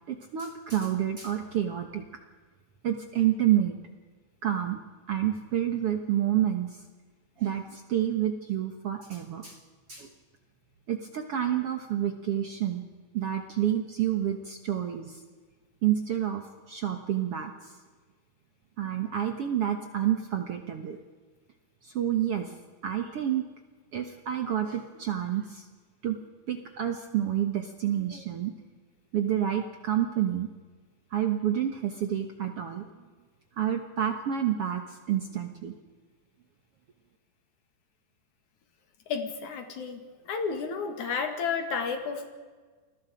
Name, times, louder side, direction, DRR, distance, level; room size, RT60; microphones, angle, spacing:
voice 1, 0.1-2.0 2.8-3.8 4.4-4.8 5.1-6.8 7.4-9.6 9.9-10.1 10.9-12.8 13.1-15.2 15.8-16.4 16.7-17.7 18.8-21.0 21.8-22.5 22.8-23.4 23.9-25.6 26.0-26.2 26.5-28.5 29.1-30.5 31.1-32.9 33.6-35.7, right 11 dB, 75° right, 6 dB, 1.3 m, -29 dB
voice 2, 39.1-40.0 40.3-42.3, left 5 dB, 55° left, 6 dB, 3.1 m, -31 dB
29.0 x 21.0 x 5.1 m, 1.4 s
omnidirectional pair, 4.5 m